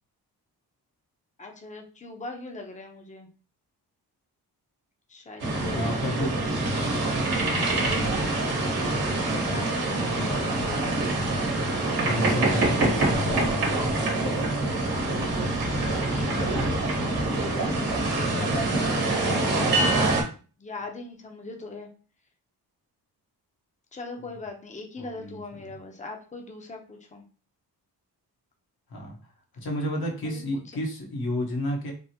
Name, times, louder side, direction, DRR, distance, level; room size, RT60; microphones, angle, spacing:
voice 1, 1.4-3.3 5.1-6.5 6.8-7.1 8.6-11.0 16.2-16.5 17.3-20.0 20.6-21.9 23.9-27.2 30.2-30.6, left 2 dB, 20° left, 3 dB, 0.7 m, -40 dB
sound 1, 5.4-20.2, right 2 dB, 65° right, 1.1 m, -25 dB
voice 2, 5.7-6.3 11.9-14.5 25.0-25.7 28.9-29.2 29.5-31.9, left 1 dB, 65° left, -1 dB, 1.2 m, -31 dB
3.5 x 2.0 x 2.8 m, 0.37 s
cardioid pair, 70°, 39 cm